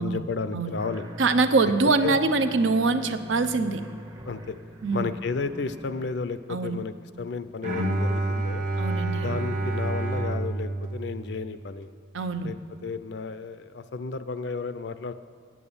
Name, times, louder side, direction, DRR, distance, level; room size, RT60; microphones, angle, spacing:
voice 1, 0.0-1.0 2.0-2.1 4.2-4.6 4.9-8.7 9.2-11.9 12.4-12.6 12.8-15.1, left 4 dB, 60° left, 12 dB, 0.4 m, -32 dB
sound 1, 0.8-6.1, equal, 20° right, 0.6 m, -42 dB
voice 2, 1.2-3.8 4.8-5.1 6.5-6.8 8.8-9.4 12.1-12.5, right 3 dB, 80° right, 10 dB, 0.6 m, -24 dB
Bowed string instrument, 7.6-11.8, right 2 dB, 45° right, 1.0 m, -28 dB
8.8 x 8.5 x 7.0 m, 2.4 s
head